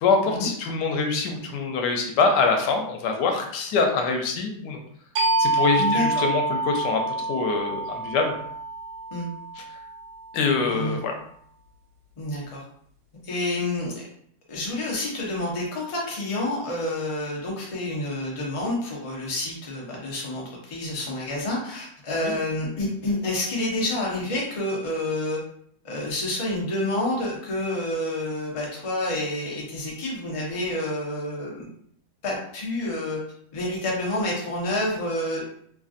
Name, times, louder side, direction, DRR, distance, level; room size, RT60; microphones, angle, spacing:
voice 1, 0.0-4.8 5.4-8.4 9.6-9.7 10.3-11.1 22.2-22.3, left 4 dB, 85° left, 4 dB, 1.2 m, -24 dB
sound 1, 5.2-10.5, right 3 dB, 85° right, 1.2 m, -27 dB
voice 2, 5.8-6.2 9.1-9.3 10.7-11.0 12.2-12.6 13.2-14.0 14.5-25.4 25.8-31.7 32.2-33.2 33.5-35.4, left 1 dB, 55° left, -3 dB, 0.3 m, -28 dB
3.1 x 2.5 x 2.4 m, 0.66 s
omnidirectional pair, 1.8 m